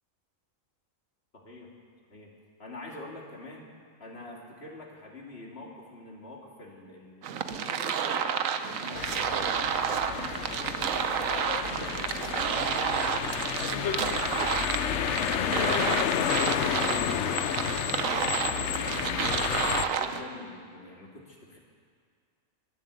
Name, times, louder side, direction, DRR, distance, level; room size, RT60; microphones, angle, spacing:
voice 1, 1.3-1.8 2.1-3.7 4.0-8.4 8.7-9.7 10.1-17.2 17.7-21.6, left 2 dB, 50° left, -1 dB, 2.7 m, -45 dB
sound 1, 7.2-20.2, right 7 dB, 75° right, 1.2 m, -30 dB
sound 2, 9.0-19.9, left 8 dB, 65° left, 0.9 m, -31 dB
22.5 x 7.6 x 8.1 m, 2.1 s
omnidirectional pair, 1.4 m